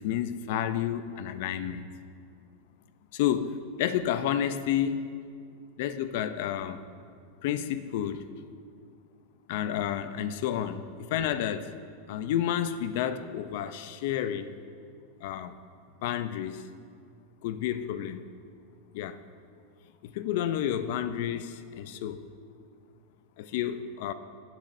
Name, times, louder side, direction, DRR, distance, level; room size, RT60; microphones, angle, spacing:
voice 1, 0.0-1.9 3.1-5.0 5.8-6.8 7.4-8.2 9.5-10.8 11.1-11.7 12.1-14.5 15.2-15.5 16.0-16.6 17.4-18.2 18.9-19.2 20.0-22.3 23.4-24.1, left 10 dB, 65° left, 12 dB, 0.5 m, -30 dB
17.5 x 7.4 x 2.7 m, 2.3 s
supercardioid pair, 125°, 0 cm